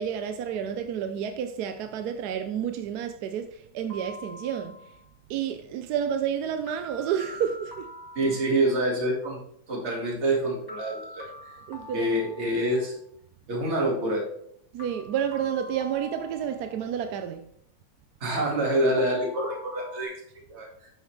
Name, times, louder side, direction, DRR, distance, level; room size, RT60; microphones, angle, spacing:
voice 1, 0.0-4.8 5.3-7.9 11.7-12.1 14.7-17.5, right 8 dB, 70° right, 1.0 m, -30 dB
sound 1, 3.9-5.0 6.7-9.0 10.7-13.0 14.8-17.1 19.0-20.0, equal, 15° left, 1.4 m, -44 dB
voice 2, 8.2-9.4 9.7-11.2 11.9-12.9 13.5-14.2 18.2-20.2 20.5-20.7, right 1 dB, 35° right, 2.2 m, -26 dB
8.9 x 7.1 x 3.2 m
omnidirectional pair, 2.0 m